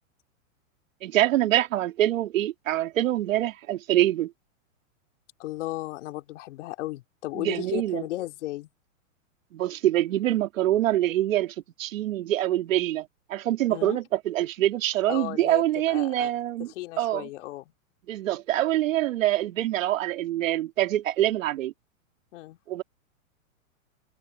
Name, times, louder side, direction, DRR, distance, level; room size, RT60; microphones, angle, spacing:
voice 1, 1.0-4.3 7.3-8.0 9.5-16.7 17.0-17.3 18.1-21.7 22.7-22.8, right 13 dB, 70° right, 3.2 m, -25 dB
voice 2, 5.4-8.7 13.7-14.0 15.1-16.3 16.7-17.7 22.3-22.6, left 17 dB, 60° left, 2.9 m, -35 dB
hypercardioid pair, 135°, 40 cm